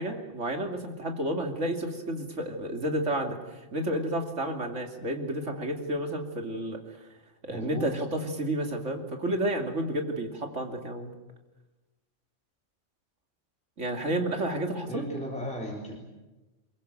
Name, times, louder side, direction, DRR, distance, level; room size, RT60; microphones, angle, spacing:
voice 1, 0.0-7.0 7.4-11.1 13.8-15.1, right 1 dB, 75° right, 4 dB, 3.1 m, -31 dB
voice 2, 7.5-7.9 14.9-16.0, equal, 5° left, -2 dB, 3.9 m, -35 dB
23.0 x 22.5 x 9.1 m, 1.1 s
omnidirectional pair, 1.3 m